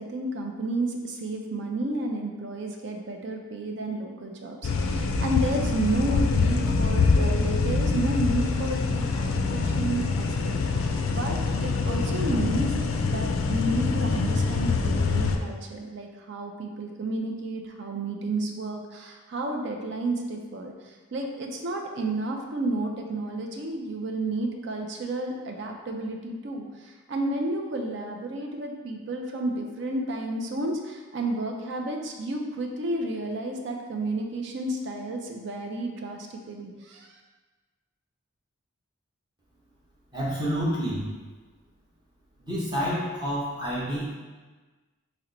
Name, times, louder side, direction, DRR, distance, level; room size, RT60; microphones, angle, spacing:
voice 1, 0.0-37.1, right 2 dB, 55° right, 2 dB, 0.4 m, -31 dB
sound 1, 4.6-15.4, left 4 dB, 70° left, 0.3 m, -25 dB
voice 2, 40.1-41.0 42.4-44.1, equal, 20° right, -7 dB, 0.9 m, -28 dB
4.3 x 2.1 x 3.8 m, 1.3 s
head